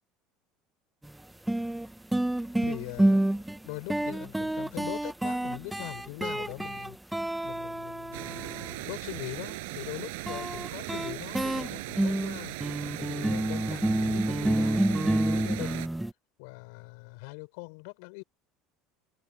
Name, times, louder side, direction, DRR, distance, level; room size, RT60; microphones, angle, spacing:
sound 1, 1.0-1.1 1.5-8.7 10.3-16.1, right 1 dB, 5° right, 0.3 m, -28 dB
voice 1, 2.6-15.9 16.4-18.2, left 28 dB, 75° left, 5.3 m, -42 dB
sound 2, 8.1-15.9, right 24 dB, 85° right, 5.8 m, -39 dB
open air
cardioid pair, 160°, 0 cm